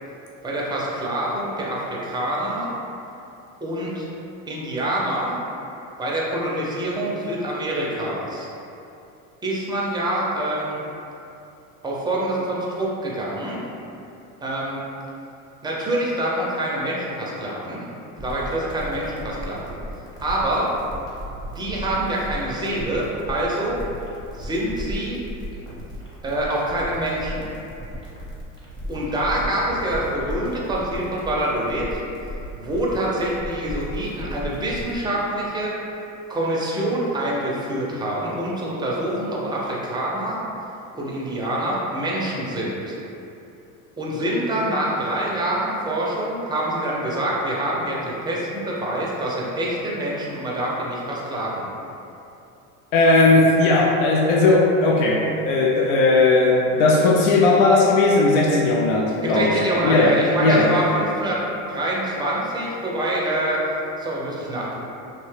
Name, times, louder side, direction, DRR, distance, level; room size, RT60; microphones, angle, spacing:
voice 1, 0.4-2.7 3.6-4.1 4.5-5.4 6.0-8.5 9.4-10.8 11.8-13.7 14.4-14.8 15.6-17.8 18.2-19.8 20.2-20.7 21.5-23.8 24.4-25.2 26.2-27.5 28.9-32.0 32.5-35.7 36.3-40.4 40.9-43.0 44.0-51.7 59.2-61.4 61.7-63.6 64.0-64.8, right 1 dB, 10° right, -5 dB, 0.4 m, -26 dB
sound 1, 18.2-35.0, equal, 10° left, 0.8 m, -35 dB
voice 2, 52.9-60.7, left 2 dB, 85° left, -2 dB, 0.5 m, -17 dB
2.8 x 2.1 x 3.1 m, 2.8 s
supercardioid pair, 110°, 38 cm